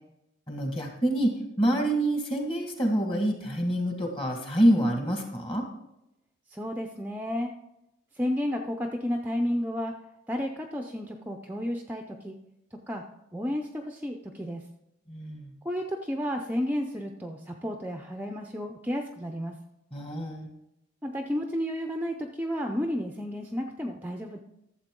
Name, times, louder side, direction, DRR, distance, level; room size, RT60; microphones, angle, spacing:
voice 1, 0.5-1.3 1.6-5.7 15.1-15.5 19.9-20.5, right 1 dB, 25° left, 2 dB, 1.6 m, -26 dB
voice 2, 6.5-7.5 8.2-10.0 10.3-12.4 12.9-13.0 13.3-14.6 15.6-19.5 21.0-24.4, equal, 10° right, 4 dB, 0.5 m, -32 dB
12.5 x 7.4 x 3.7 m, 0.87 s
head